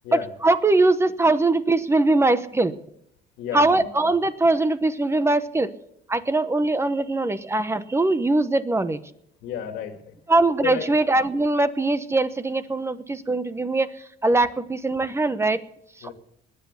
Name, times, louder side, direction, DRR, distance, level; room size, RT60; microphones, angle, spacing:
voice 1, 0.1-2.7 3.5-5.7 6.1-9.0 10.3-15.6 16.0-16.1, right 2 dB, 15° right, 12 dB, 1.0 m, -21 dB
voice 2, 3.4-3.9 9.4-10.1 10.6-10.9 16.0-16.1, left 9 dB, 80° left, 5 dB, 2.4 m, -32 dB
20.5 x 8.3 x 8.4 m, 0.73 s
cardioid pair, 110°, 17 cm